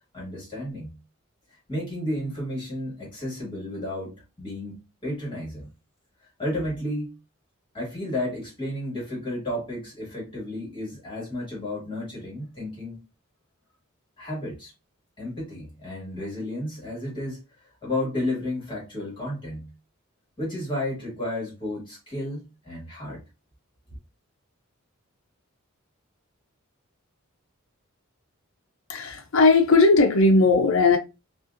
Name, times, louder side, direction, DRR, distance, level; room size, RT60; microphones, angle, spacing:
voice 1, 0.1-0.9 1.7-4.8 5.0-5.7 6.4-7.1 7.7-13.0 14.2-14.7 15.2-17.4 17.8-19.7 20.4-23.2, left 1 dB, 25° left, 2.2 m, -32 dB
voice 2, 28.9-31.0, left 3 dB, 70° left, 0.6 m, -18 dB
5.3 x 2.5 x 2.5 m
head